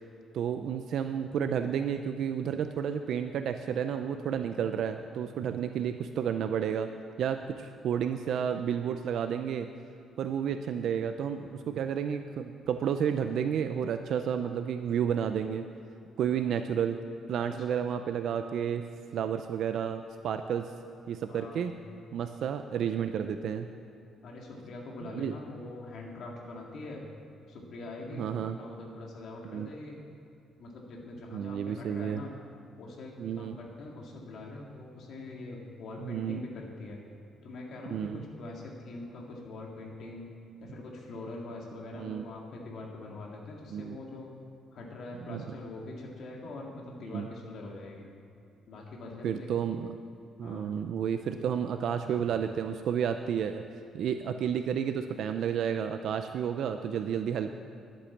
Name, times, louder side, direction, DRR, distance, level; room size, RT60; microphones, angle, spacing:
voice 1, 0.3-6.9 7.2-9.7 10.2-15.6 16.2-17.0 17.3-18.8 19.1-20.7 21.1-21.7 22.1-23.7 25.1-25.3 28.2-28.5 29.4-29.7 31.3-32.2 33.2-33.5 36.0-36.4 37.9-38.2 42.0-42.2 43.7-44.0 45.3-45.4 47.1-47.3 49.2-50.0 50.4-53.6 53.9-57.5, right 8 dB, 60° right, 8 dB, 0.5 m, -31 dB
voice 2, 21.3-21.8 24.2-27.1 27.5-30.0 30.6-32.3 32.8-37.0 37.4-40.3 40.6-44.3 44.7-48.1 48.7-49.5 50.4-50.7, left 2 dB, 55° left, -1 dB, 2.1 m, -43 dB
11.5 x 8.5 x 7.1 m, 2.6 s
cardioid pair, 160°, 0 cm